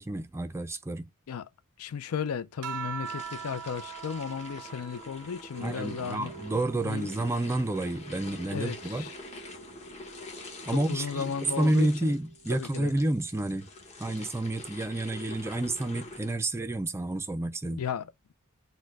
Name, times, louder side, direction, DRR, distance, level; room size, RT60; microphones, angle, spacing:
voice 1, 0.0-1.1 5.6-9.0 10.7-13.7 14.0-17.8, right 1 dB, 10° right, 0.3 m, -30 dB
voice 2, 1.8-6.3 6.8-7.1 8.3-9.2 10.7-12.1 12.5-12.9 17.7-18.1, left 7 dB, 85° left, 0.4 m, -35 dB
sound 1, 2.6-7.4 7.9-9.6 10.8-11.3, right 8 dB, 90° right, 0.4 m, -43 dB
sound 2, 3.0-16.3, left 2 dB, 30° left, 0.9 m, -46 dB
Mallet percussion, 5.5-14.3, right 5 dB, 70° left, 1.3 m, -50 dB
4.4 x 2.1 x 4.5 m
head